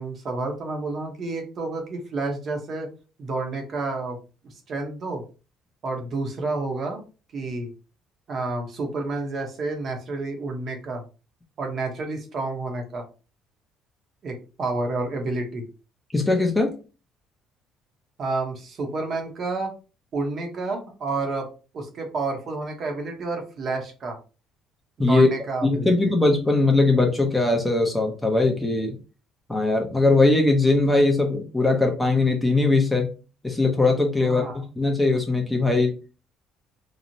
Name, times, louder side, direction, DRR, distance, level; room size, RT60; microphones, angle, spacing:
voice 1, 0.0-2.9 3.2-4.2 4.7-5.2 5.8-7.0 7.3-7.7 8.3-11.0 11.6-13.0 14.2-15.6 18.2-19.7 20.1-21.5 21.7-24.2 25.0-26.1 34.2-34.6, right 3 dB, 45° right, 3 dB, 0.7 m, -30 dB
voice 2, 16.1-16.7 25.0-25.3 25.6-29.0 29.5-33.1 33.4-35.9, left 2 dB, 10° left, 2 dB, 0.5 m, -20 dB
2.9 x 2.0 x 2.5 m, 0.34 s
cardioid pair, 130°, 0 cm